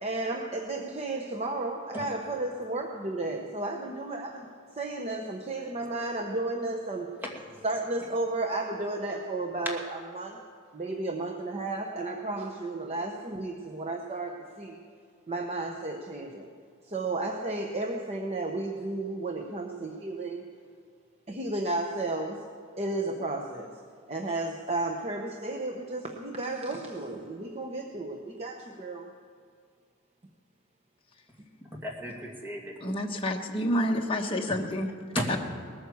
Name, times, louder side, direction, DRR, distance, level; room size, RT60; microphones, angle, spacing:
voice 1, 0.0-4.5 4.8-7.1 7.6-9.8 10.2-10.4 10.7-14.8 15.3-16.5 16.8-20.4 21.3-22.4 22.8-23.7 24.1-29.1, right 2 dB, 30° right, 2 dB, 0.9 m, -33 dB
voice 2, 7.2-7.6 31.7-32.7 34.5-34.6 35.1-35.4, equal, 10° right, -1 dB, 2.4 m, -35 dB
voice 3, 32.8-34.9 35.3-35.4, left 1 dB, 25° left, 1 dB, 1.2 m, -28 dB
19.5 x 9.3 x 7.1 m, 2.3 s
head